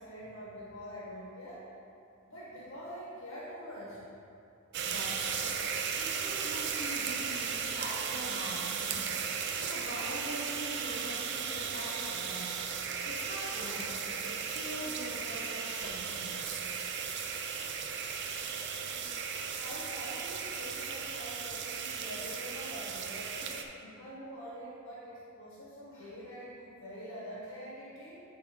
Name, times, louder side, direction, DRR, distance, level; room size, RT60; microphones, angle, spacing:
voice 1, 0.0-1.7 2.2-4.1 18.2-19.1 19.6-28.2, equal, 75° left, -6 dB, 1.3 m, -45 dB
sound 1, 4.7-23.6, right 6 dB, 55° right, 0.5 m, -36 dB
voice 2, 4.8-5.7 6.0-12.6 13.0-16.4, equal, 50° left, -6 dB, 1.7 m, -43 dB
9.2 x 3.7 x 4.9 m, 2.7 s
head